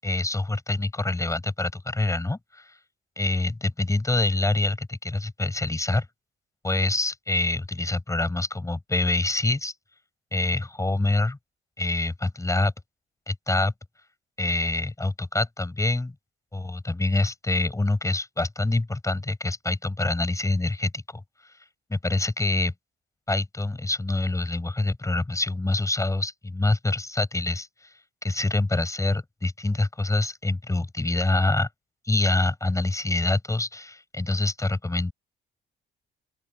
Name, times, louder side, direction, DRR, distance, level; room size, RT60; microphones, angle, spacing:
voice 1, 0.0-2.7 3.2-6.0 6.6-9.7 10.3-11.4 11.8-12.7 13.3-13.7 14.4-16.1 16.5-21.2 21.9-22.7 23.3-27.9 28.2-31.7 32.0-35.1, left 2 dB, 15° left, 6.7 m, -26 dB
open air
cardioid pair, 90°, 20 cm